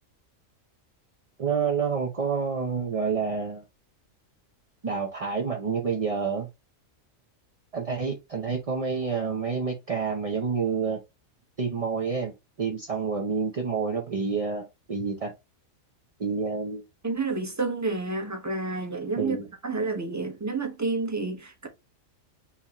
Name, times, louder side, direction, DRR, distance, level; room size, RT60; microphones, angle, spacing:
voice 1, 1.4-3.6 4.8-6.5 7.7-11.0 11.6-15.3 16.2-16.9 19.2-19.5, right 5 dB, 40° right, 0.5 m, -28 dB
voice 2, 17.0-19.4 19.6-21.7, right 3 dB, 15° right, 0.9 m, -29 dB
5.7 x 2.9 x 2.9 m
omnidirectional pair, 1.4 m